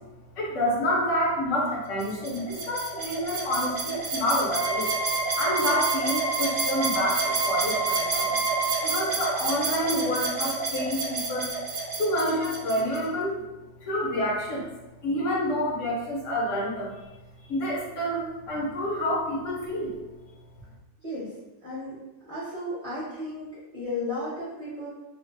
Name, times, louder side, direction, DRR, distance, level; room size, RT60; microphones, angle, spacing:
voice 1, 0.4-4.9 5.4-8.4 8.8-11.5 12.0-13.4 13.8-14.7 15.0-17.0 17.4-20.0, left 1 dB, 70° left, -4 dB, 1.0 m, -28 dB
sound 1, 2.0-13.0, right 4 dB, 60° right, 0.6 m, -29 dB
Wind instrument woodwind instrument, 4.5-9.0, right 3 dB, 80° right, 1.0 m, -30 dB
voice 2, 21.0-21.3 21.6-22.0 22.3-24.9, left 1 dB, 30° right, -10 dB, 0.9 m, -34 dB
2.6 x 2.3 x 2.5 m, 1.0 s
omnidirectional pair, 1.4 m